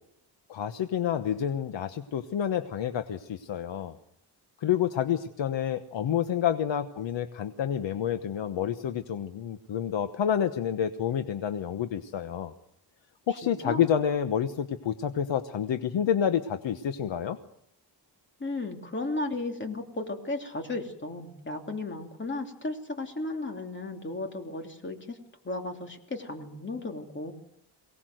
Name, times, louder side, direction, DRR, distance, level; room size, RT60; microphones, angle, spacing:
voice 1, 0.5-3.9 4.6-12.5 13.3-17.4, left 9 dB, 80° left, 9 dB, 1.1 m, -29 dB
voice 2, 13.4-13.9 18.4-25.2 25.4-27.3, left 2 dB, 25° left, 4 dB, 3.0 m, -35 dB
23.5 x 18.5 x 7.8 m, 0.76 s
wide cardioid pair, 125°, 43 cm